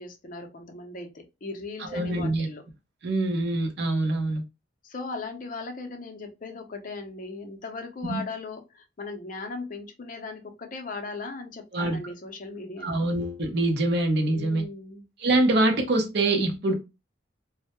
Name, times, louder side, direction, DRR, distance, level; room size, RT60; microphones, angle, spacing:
voice 1, 0.0-2.6 4.8-13.0 14.3-15.1, left 3 dB, 45° left, 0.5 m, -38 dB
voice 2, 1.8-2.5 3.0-4.4 8.0-8.2 11.7-12.0 12.8-14.6 15.2-16.7, right 2 dB, 60° right, 0.6 m, -24 dB
2.1 x 2.0 x 2.8 m
head